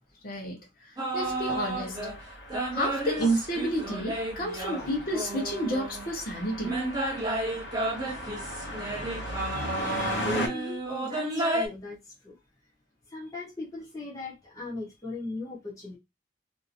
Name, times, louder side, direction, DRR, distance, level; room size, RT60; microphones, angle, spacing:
voice 1, 0.2-0.6 1.1-1.9 2.7-6.8, right 1 dB, 50° left, 1.0 m, -30 dB
sound 1, 1.0-2.2 2.5-6.1 6.6-11.7, right 1 dB, 20° right, 0.7 m, -32 dB
sound 2, 1.2-10.5, equal, 75° left, 0.9 m, -37 dB
voice 2, 9.5-12.0 12.2-12.3 13.1-16.0, left 2 dB, 20° left, 0.8 m, -38 dB
2.7 x 2.7 x 2.5 m
head